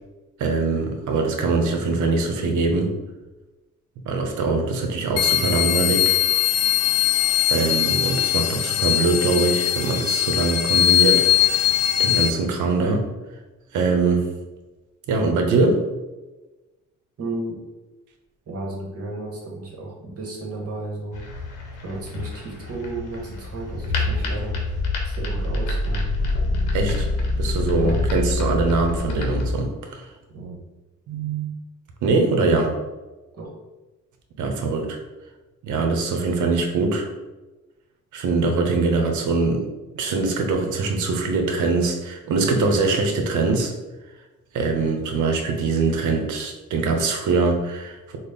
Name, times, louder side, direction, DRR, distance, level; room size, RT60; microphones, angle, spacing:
voice 1, 0.4-2.9 4.1-6.1 7.5-11.7 12.0-13.1 13.7-14.3 15.1-15.8 26.7-27.1 27.4-30.1 31.1-31.5 32.0-32.7 34.4-35.0 35.6-37.1 38.1-39.6 39.9-43.7 44.5-48.2, right 3 dB, 75° right, 4 dB, 0.7 m, -22 dB
sound 1, 5.2-12.3, left 12 dB, 55° left, 0.4 m, -20 dB
voice 2, 17.2-17.6 18.5-21.5 21.8-26.2 27.7-28.1 30.3-30.6 33.3-33.5, right 2 dB, 50° right, -1 dB, 1.1 m, -33 dB
sound 2, 21.1-29.5, left 2 dB, 85° left, 0.8 m, -26 dB
4.0 x 2.0 x 3.4 m, 1.1 s
cardioid pair, 90°, 30 cm